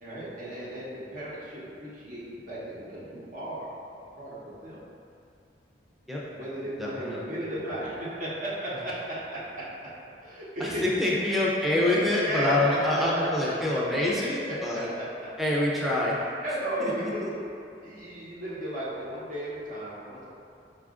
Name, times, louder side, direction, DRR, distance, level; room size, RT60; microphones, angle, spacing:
voice 1, 0.0-3.7 4.2-4.8 6.3-9.7 10.2-10.9 12.2-13.5 13.9-15.3 16.4-17.4 17.8-20.2, right 1 dB, 50° right, -8 dB, 0.9 m, -34 dB
voice 2, 6.8-7.2 10.8-14.9 15.4-16.2 16.8-16.9 17.2-17.3, left 1 dB, ahead, -6 dB, 0.6 m, -26 dB
5.0 x 2.4 x 3.6 m, 2.5 s
head